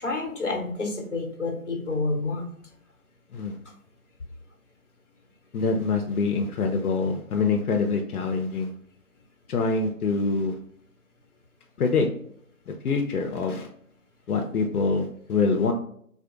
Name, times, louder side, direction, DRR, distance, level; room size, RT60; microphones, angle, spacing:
voice 1, 0.0-2.4, left 3 dB, 55° left, 2 dB, 0.9 m, -29 dB
voice 2, 5.5-8.7 9.5-10.6 11.8-12.1 12.7-13.7 14.3-15.7, left 4 dB, 85° left, 3 dB, 0.6 m, -25 dB
3.7 x 2.5 x 2.4 m, 0.65 s
figure-of-eight pair, 175°, 44 cm